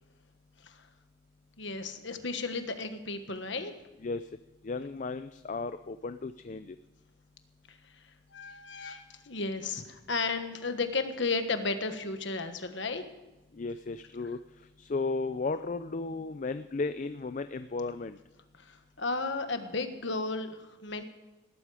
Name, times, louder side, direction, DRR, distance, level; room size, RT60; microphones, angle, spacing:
voice 1, 1.6-3.7 7.7-7.8 8.3-13.0 18.6-21.0, left 3 dB, 60° left, 8 dB, 1.4 m, -34 dB
voice 2, 4.6-6.8 13.5-18.2, left 3 dB, 40° left, 11 dB, 0.4 m, -35 dB
19.0 x 12.5 x 4.9 m, 1.1 s
head